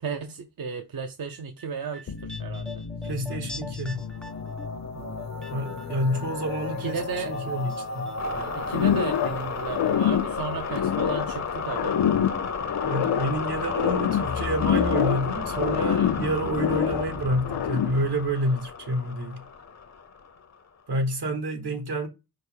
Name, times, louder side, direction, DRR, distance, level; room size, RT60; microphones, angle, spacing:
voice 1, 0.0-3.5 4.9-5.2 6.7-7.4 8.3-12.0 15.7-16.2 18.4-18.6, right 6 dB, 60° right, 0.6 m, -35 dB
sound 1, 1.3-6.6 6.8-7.8 8.0-8.1, left 2 dB, ahead, 0.3 m, -44 dB
sound 2, 2.1-20.5, left 5 dB, 45° left, 0.6 m, -33 dB
voice 2, 3.0-4.0 5.5-7.0 7.2-8.1 12.8-19.4 20.9-22.1, right 1 dB, 75° right, 1.3 m, -28 dB
sound 3, 8.7-9.4 9.7-11.4 11.7-13.4 13.7-15.3 15.6-17.1 17.4-18.1, left 9 dB, 85° left, 0.5 m, -25 dB
5.1 x 2.0 x 4.4 m
wide cardioid pair, 75°, 40 cm